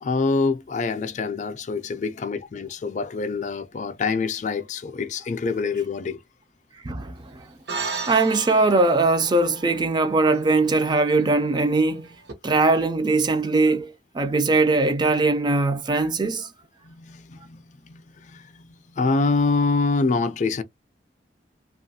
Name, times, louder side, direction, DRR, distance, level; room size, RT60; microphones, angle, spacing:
voice 1, 0.0-6.2 16.2-16.3 16.8-20.6, left 4 dB, 45° left, 0.4 m, -26 dB
voice 2, 6.8-7.4 8.1-12.1 12.4-16.5, right 3 dB, 25° right, 0.4 m, -21 dB
sound 1, 7.7-12.3, right 4 dB, 75° right, 0.9 m, -36 dB
2.9 x 2.3 x 2.7 m
head